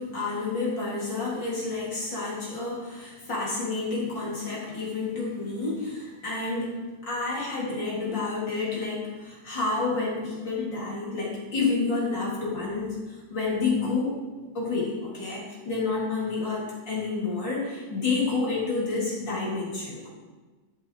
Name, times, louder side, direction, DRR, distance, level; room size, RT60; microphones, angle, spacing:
voice 1, 0.0-6.8 7.0-14.2 14.5-20.1, left 3 dB, 25° left, -6 dB, 3.1 m, -29 dB
15.0 x 7.6 x 4.9 m, 1.3 s
omnidirectional pair, 6.0 m